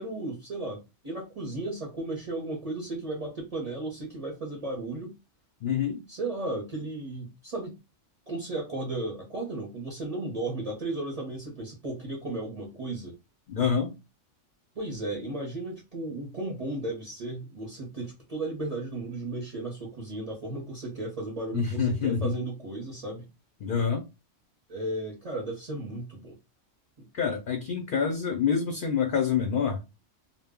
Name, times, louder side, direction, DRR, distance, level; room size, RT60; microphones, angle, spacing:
voice 1, 0.0-5.1 6.1-7.7 8.3-13.1 14.7-23.3 24.7-26.3 27.0-27.1, right 2 dB, 40° right, 0.6 m, -35 dB
voice 2, 5.6-6.0 13.5-13.9 21.5-22.3 23.6-24.0 27.1-29.8, left 6 dB, 60° left, 0.5 m, -27 dB
2.1 x 2.0 x 3.4 m
omnidirectional pair, 1.3 m